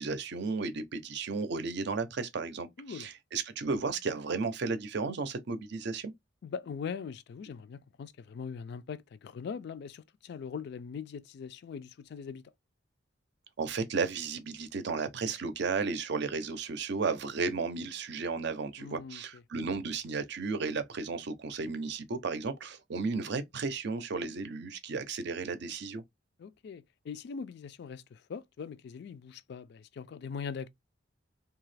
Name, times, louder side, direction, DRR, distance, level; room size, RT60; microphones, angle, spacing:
voice 1, 0.0-6.1 13.6-26.0, right 4 dB, 65° right, 0.5 m, -34 dB
voice 2, 2.8-3.1 6.4-12.4 18.8-19.4 26.4-30.7, left 6 dB, 60° left, 0.3 m, -41 dB
2.8 x 2.3 x 3.2 m
head